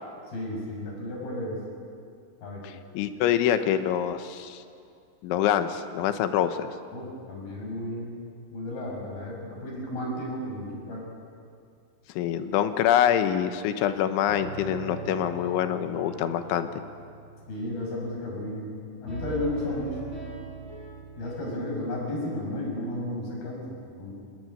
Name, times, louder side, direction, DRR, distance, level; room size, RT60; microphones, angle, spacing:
voice 1, 0.3-1.6 2.4-2.7 6.9-8.2 8.5-11.1 17.5-18.7 19.0-20.0 21.2-24.1, left 1 dB, 50° left, -1 dB, 7.7 m, -33 dB
voice 2, 2.6-4.6 5.2-6.7 12.2-16.7, left 10 dB, 80° left, 9 dB, 3.5 m, -25 dB
sound 1, 14.3-18.8 19.0-21.4, right 3 dB, 20° left, 8.5 m, -40 dB
26.5 x 19.5 x 9.7 m, 2.4 s
omnidirectional pair, 5.5 m